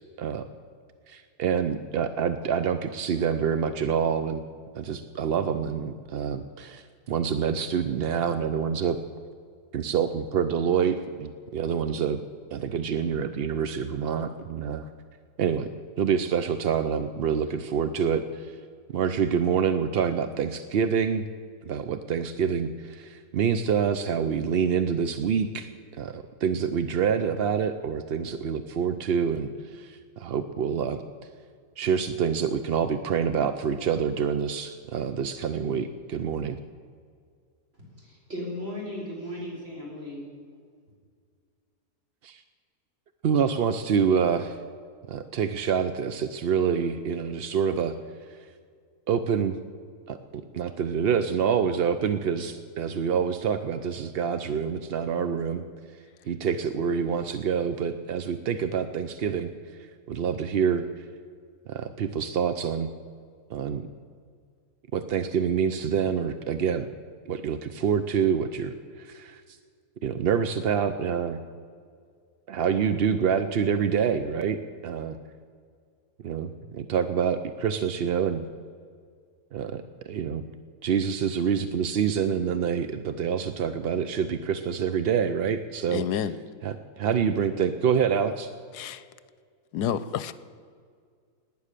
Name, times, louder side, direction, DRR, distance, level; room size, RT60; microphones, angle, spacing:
voice 1, 1.1-4.4 4.8-9.0 9.7-12.2 12.5-14.9 15.4-15.7 16.0-18.5 18.9-21.2 21.7-25.7 26.0-31.0 31.8-36.6 42.2-42.4 43.2-44.6 45.1-47.9 49.1-49.6 50.1-50.2 50.5-55.6 56.3-59.5 60.1-60.9 61.7-62.9 63.5-63.9 64.9-66.9 67.3-69.4 70.0-71.4 72.5-75.2 76.2-78.4 79.5-80.4 80.8-86.0 86.6-88.5, right 7 dB, 60° right, 10 dB, 0.6 m, -26 dB
voice 2, 37.7-40.3, left 1 dB, 40° right, -3 dB, 4.8 m, -36 dB
voice 3, 85.9-86.4 88.7-89.0 89.7-90.3, left 9 dB, 80° left, 15 dB, 1.2 m, -29 dB
18.5 x 9.7 x 6.7 m, 2.1 s
omnidirectional pair, 1.7 m